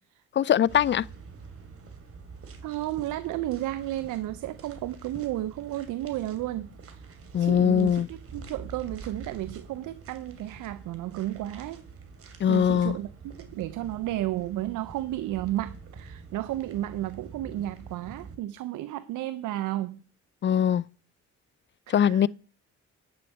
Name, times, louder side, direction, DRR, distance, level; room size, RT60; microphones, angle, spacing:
voice 1, 0.3-1.1 7.3-8.1 12.4-13.0 20.4-20.8 21.9-22.3, left 9 dB, 40° left, 0.4 m, -22 dB
Foot Steps, 0.7-18.4, right 4 dB, 50° right, 2.7 m, -46 dB
voice 2, 2.6-7.0 7.4-8.0 8.3-11.8 12.5-20.0 21.9-22.2, right 14 dB, 85° right, 0.7 m, -33 dB
11.0 x 5.2 x 8.0 m
cardioid pair, 90°, 30 cm